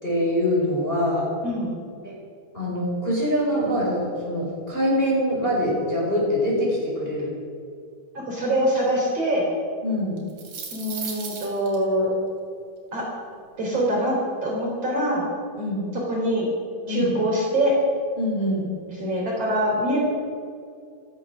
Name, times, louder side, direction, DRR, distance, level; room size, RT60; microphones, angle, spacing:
voice 1, 0.0-1.3 2.0-2.1 2.5-7.3 9.8-10.2 15.6-15.8 16.9-17.1 18.2-18.6, equal, 15° left, -5 dB, 4.8 m, -24 dB
voice 2, 8.1-9.4 10.7-12.1 12.9-13.0 13.6-14.2 14.4-15.3 15.9-16.5 16.9-17.7 18.9-20.0, equal, 40° right, -3 dB, 4.6 m, -24 dB
sound 1, 10.2-11.8, right 5 dB, 65° right, 4.4 m, -35 dB
16.0 x 14.5 x 6.3 m, 2.3 s
omnidirectional pair, 4.3 m